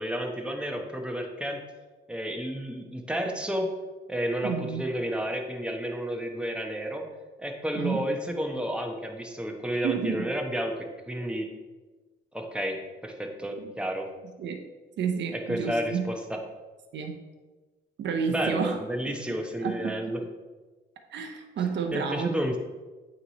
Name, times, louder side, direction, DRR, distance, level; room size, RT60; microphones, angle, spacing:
voice 1, 0.0-1.6 2.1-3.7 4.1-7.0 7.4-10.7 11.1-11.5 12.3-14.1 15.3-16.4 18.3-20.2 21.9-22.6, equal, 5° right, 2 dB, 1.0 m, -31 dB
voice 2, 4.4-4.8 7.7-8.1 9.8-10.3 13.6-13.7 14.4-14.6 15.0-16.0 16.9-17.2 18.0-18.8 19.3-19.9 21.1-22.4, right 6 dB, 65° right, 4 dB, 0.7 m, -30 dB
8.6 x 3.2 x 4.1 m, 1.2 s
cardioid pair, 90°, 20 cm